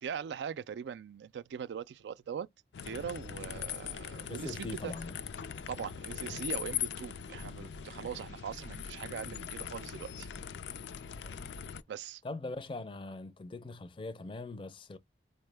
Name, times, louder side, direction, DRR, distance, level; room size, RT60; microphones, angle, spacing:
voice 1, 0.0-2.5 2.8-4.9 5.7-10.3 11.9-12.2, right 7 dB, 80° right, 0.3 m, -41 dB
sound 1, 2.7-11.8, left 8 dB, 85° left, 0.4 m, -41 dB
voice 2, 4.3-5.2 11.2-11.4 12.2-15.0, left 2 dB, 30° left, 0.4 m, -41 dB
4.4 x 2.1 x 3.2 m
head